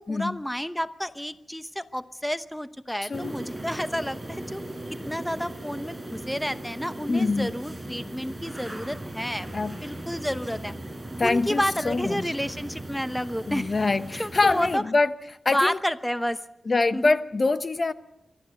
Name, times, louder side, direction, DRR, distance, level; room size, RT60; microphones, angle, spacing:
voice 1, 0.0-4.6 5.0-10.7 11.2-13.7 14.2-14.8 15.5-16.4 16.9-17.2, equal, 5° left, 0.9 m, -30 dB
sound 1, 3.1-14.8, right 1 dB, 15° right, 4.5 m, -38 dB
voice 2, 7.1-7.5 9.5-9.8 11.2-12.3 13.5-15.1 15.4-15.8 16.7-17.9, left 3 dB, 45° left, 1.1 m, -24 dB
25.5 x 13.0 x 8.3 m
cardioid pair, 75°, 0 cm